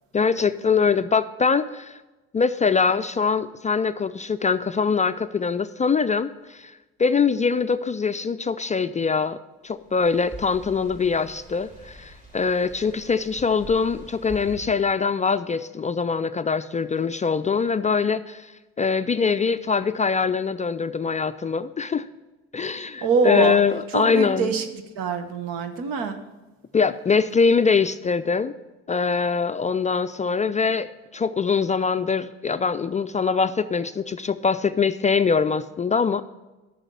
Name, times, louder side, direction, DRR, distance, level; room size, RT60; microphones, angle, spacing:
voice 1, 0.1-2.0 2.3-6.7 7.0-9.4 9.6-18.5 18.8-22.1 22.5-24.5 26.7-28.5 28.9-36.2, left 5 dB, 20° left, 11 dB, 0.3 m, -23 dB
sound 1, 9.8-14.6, right 1 dB, 20° right, 2.9 m, -44 dB
voice 2, 23.0-23.6 23.9-24.6 25.0-26.2, right 5 dB, 70° right, 8 dB, 1.1 m, -24 dB
9.0 x 6.0 x 6.9 m, 1.1 s
hypercardioid pair, 60°, 35 cm